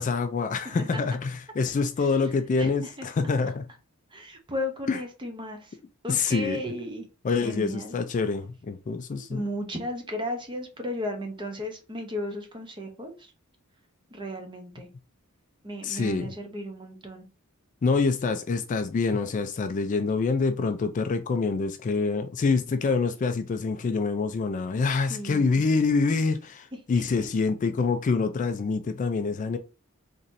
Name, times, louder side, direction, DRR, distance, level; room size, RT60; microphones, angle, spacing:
voice 1, 0.0-3.7 4.9-5.0 6.1-6.6 7.2-9.4 15.8-16.4 17.8-29.6, left 4 dB, 35° left, 0.3 m, -26 dB
voice 2, 0.6-1.0 2.6-3.1 4.1-5.8 6.0-7.0 7.4-7.9 9.3-13.3 14.1-14.9 15.6-17.3 25.1-25.6 27.0-27.1, left 1 dB, 20° right, 0.8 m, -35 dB
4.0 x 3.0 x 2.6 m
head